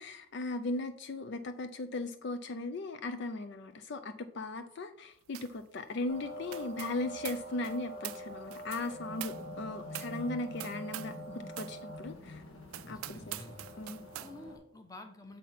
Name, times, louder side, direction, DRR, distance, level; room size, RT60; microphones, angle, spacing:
voice 1, 0.0-12.4 12.9-13.4 13.8-14.0, left 2 dB, 55° left, 0.4 m, -38 dB
sound 1, 5.3-5.6 5.9-11.2 11.5-11.8 12.2-12.3 12.7-14.3, right 14 dB, 80° right, 0.4 m, -45 dB
sound 2, 6.1-14.6, equal, 70° left, 1.1 m, -45 dB
voice 2, 12.8-13.6 14.2-15.4, left 2 dB, 15° left, 1.0 m, -49 dB
7.3 x 4.2 x 5.8 m
head